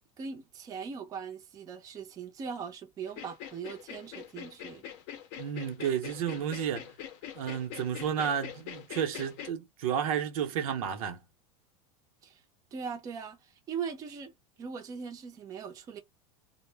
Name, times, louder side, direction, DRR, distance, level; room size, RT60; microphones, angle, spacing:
voice 1, 0.2-4.8 12.2-12.4 12.7-13.4 13.7-14.3 14.6-16.0, right 6 dB, 20° right, 0.5 m, -40 dB
sound 1, 3.1-9.5, left 10 dB, 50° left, 0.6 m, -43 dB
voice 2, 5.4-6.9 7.3-11.2, right 8 dB, 85° right, 0.7 m, -32 dB
2.0 x 2.0 x 3.3 m
supercardioid pair, 150°, 18 cm